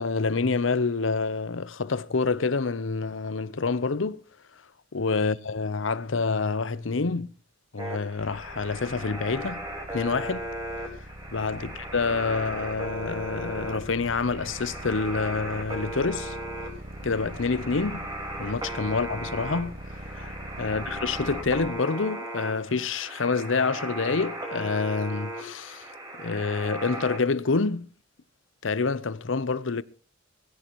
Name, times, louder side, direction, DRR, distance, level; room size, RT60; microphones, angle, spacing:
voice 1, 0.0-4.2 4.9-7.3 7.7-9.7 9.9-10.5 11.3-16.4 17.0-18.1 18.4-19.8 20.1-25.9 26.1-27.9 28.6-29.8, left 4 dB, 85° left, 0.8 m, -27 dB
sound 1, 7.8-27.2, right 1 dB, 20° right, 4.7 m, -37 dB
sound 2, 8.2-21.7, right 1 dB, 50° right, 1.6 m, -43 dB
21.5 x 15.5 x 3.1 m
head